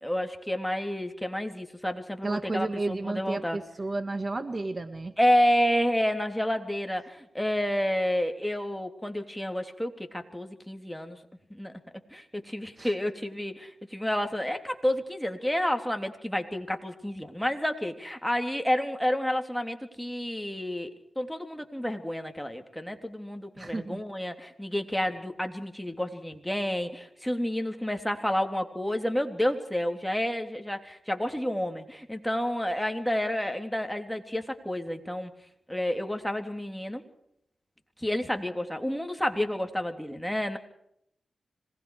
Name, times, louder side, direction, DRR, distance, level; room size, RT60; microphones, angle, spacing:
voice 1, 0.0-3.6 5.2-11.2 11.5-11.7 12.1-35.3 35.7-37.0 38.0-40.6, equal, 5° left, 5 dB, 3.3 m, -30 dB
voice 2, 2.2-5.1 12.8-12.9 23.6-24.0, right 2 dB, 40° right, 9 dB, 1.8 m, -32 dB
26.0 x 20.0 x 5.0 m, 0.74 s
cardioid pair, 55°, 0 cm